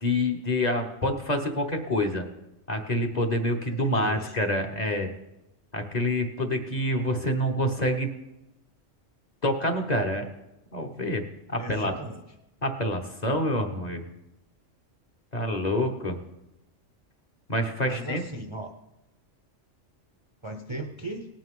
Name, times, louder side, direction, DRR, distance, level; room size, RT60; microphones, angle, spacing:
voice 1, 0.0-2.2 2.7-5.1 5.7-8.1 9.4-10.3 10.7-11.2 11.5-11.9 12.6-14.0 15.3-16.2 17.5-18.2, left 1 dB, 35° left, 3 dB, 1.2 m, -27 dB
voice 2, 3.7-4.4 11.6-12.2 17.8-18.7 20.4-21.3, right 1 dB, 30° right, 4 dB, 0.7 m, -37 dB
18.5 x 9.1 x 3.7 m, 0.92 s
omnidirectional pair, 1.3 m